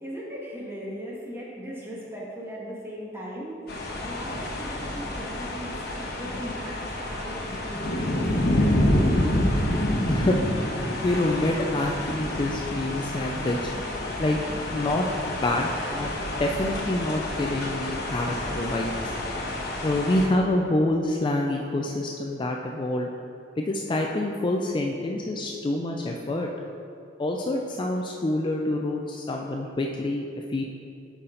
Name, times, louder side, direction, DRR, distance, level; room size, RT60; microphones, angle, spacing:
voice 1, 0.0-3.5 4.0-8.2, equal, 15° right, -6 dB, 1.6 m, -38 dB
sound 1, 3.7-20.3, left 1 dB, 60° left, 1.2 m, -28 dB
voice 2, 11.0-13.6 14.2-14.4 14.7-16.1 16.4-19.1 19.8-23.1 23.6-26.5 27.2-30.6, left 1 dB, 25° left, 1 dB, 0.4 m, -27 dB
8.1 x 5.7 x 3.8 m, 2.6 s
head